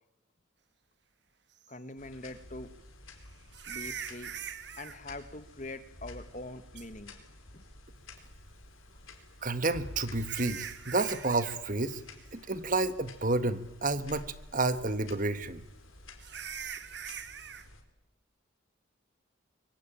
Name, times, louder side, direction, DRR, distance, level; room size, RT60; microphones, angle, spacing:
sound 1, 1.6-1.7 3.5-5.0 6.7-6.9 9.4-11.6 11.8-12.2 12.6-12.7 13.3-13.4 16.2-17.7, right 8 dB, 55° right, 1.6 m, -42 dB
voice 1, 1.7-2.7 3.7-4.3 4.8-7.1 7.5-7.6, left 2 dB, 40° left, 11 dB, 1.7 m, -43 dB
sound 2, 2.0-17.8, left 2 dB, 85° left, 4.6 m, -51 dB
voice 2, 9.4-12.0 12.3-14.2 14.5-15.6, right 2 dB, 40° right, 13 dB, 1.4 m, -30 dB
24.5 x 24.5 x 8.9 m, 0.92 s
head